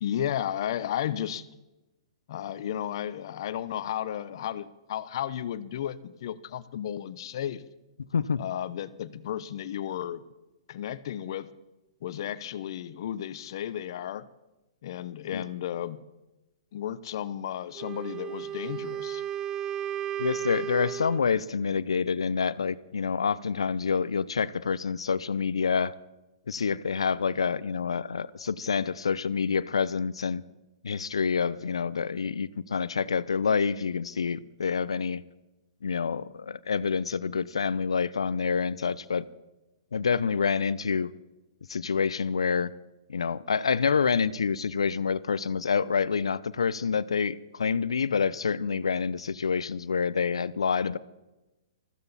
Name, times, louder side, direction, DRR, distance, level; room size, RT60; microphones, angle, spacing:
voice 1, 0.0-1.5 2.3-7.6 8.4-10.2 10.7-11.5 12.0-14.3 14.8-16.0 16.7-19.2, left 10 dB, 55° left, 1.0 m, -33 dB
Wind instrument woodwind instrument, 17.7-21.3, right 11 dB, 20° right, 0.4 m, -34 dB
voice 2, 20.2-25.9 26.5-30.4 30.8-35.2 35.8-39.2 39.9-41.1 41.7-42.7 43.1-51.0, left 6 dB, 80° left, 0.7 m, -27 dB
21.0 x 15.0 x 4.2 m
hypercardioid pair, 120°, 3 cm